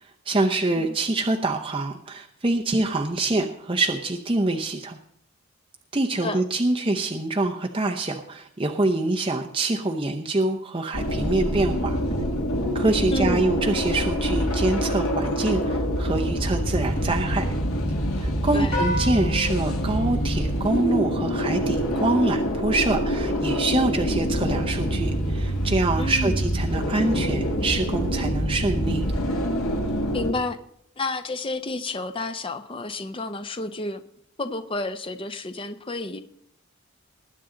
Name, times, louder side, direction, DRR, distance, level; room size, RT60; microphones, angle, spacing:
voice 1, 0.0-5.0 5.9-12.0 12.7-17.5 18.2-29.0, right 2 dB, 25° right, 3 dB, 0.7 m, -25 dB
sound 1, 10.9-30.3, equal, 75° left, 1.9 m, -25 dB
voice 2, 13.1-13.6 18.5-18.8 26.0-26.4 30.1-30.6 31.0-34.0 34.4-36.2, left 2 dB, 25° left, 9 dB, 0.6 m, -30 dB
sound 2, 18.7-21.2, left 1 dB, 50° left, 4.3 m, -33 dB
20.0 x 9.0 x 3.8 m, 0.69 s
head